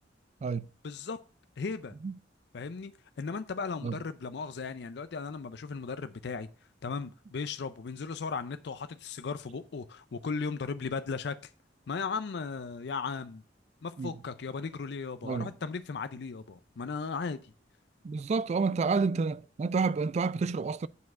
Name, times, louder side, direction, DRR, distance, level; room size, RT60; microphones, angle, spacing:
voice 1, 0.8-1.2 1.6-1.9 2.5-2.9 3.2-6.5 6.8-11.4 11.9-13.4 13.8-17.4, left 5 dB, 65° left, 0.5 m, -36 dB
voice 2, 18.0-20.9, right 4 dB, 40° right, 0.3 m, -29 dB
8.2 x 4.8 x 6.1 m
head